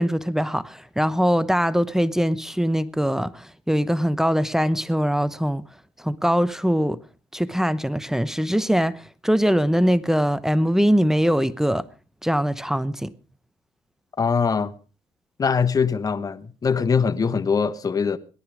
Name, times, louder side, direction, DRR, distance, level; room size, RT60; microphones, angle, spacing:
voice 1, 0.0-5.7 6.0-7.0 7.3-11.9 12.2-13.1, equal, 5° right, 0.9 m, -22 dB
voice 2, 14.2-14.7 15.4-18.2, left 5 dB, 30° left, 1.1 m, -22 dB
18.0 x 12.0 x 4.9 m
supercardioid pair, 75°, 12 cm